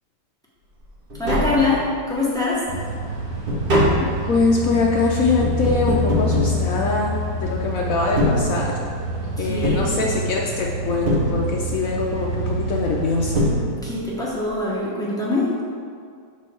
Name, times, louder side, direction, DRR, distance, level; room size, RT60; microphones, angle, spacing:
Tap, 0.8-0.9 1.1-2.2 2.6-7.4 8.0-9.1 9.6-10.6 11.1-11.9 12.9-13.0 13.3-14.2 14.4-14.5, equal, 40° right, 0.8 m, -24 dB
voice 1, 1.2-2.6 9.4-10.0 13.8-15.5, left 3 dB, 5° left, -7 dB, 1.0 m, -23 dB
sound 1, 2.7-13.5, right 1 dB, 55° right, 1.3 m, -27 dB
voice 2, 4.0-8.8 9.4-13.4, left 3 dB, 75° left, -1 dB, 0.8 m, -23 dB
5.3 x 4.4 x 6.1 m, 2.2 s
omnidirectional pair, 2.1 m